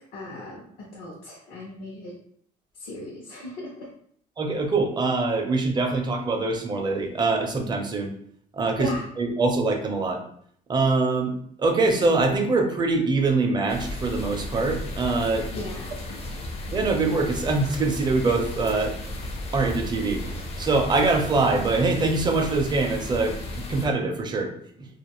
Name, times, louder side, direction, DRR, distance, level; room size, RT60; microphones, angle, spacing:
voice 1, 0.1-2.1 2.8-3.7 8.8-9.0 15.5-15.9, left 2 dB, 80° left, -3 dB, 0.8 m, -36 dB
voice 2, 4.4-8.1 8.5-10.2 10.7-15.5 16.7-18.9 19.5-20.2 20.6-24.9, right 3 dB, 25° right, 3 dB, 0.5 m, -24 dB
sound 1, 13.7-23.9, left 1 dB, 40° left, 0.5 m, -34 dB
2.4 x 2.4 x 2.9 m, 0.64 s
cardioid pair, 115°, 16 cm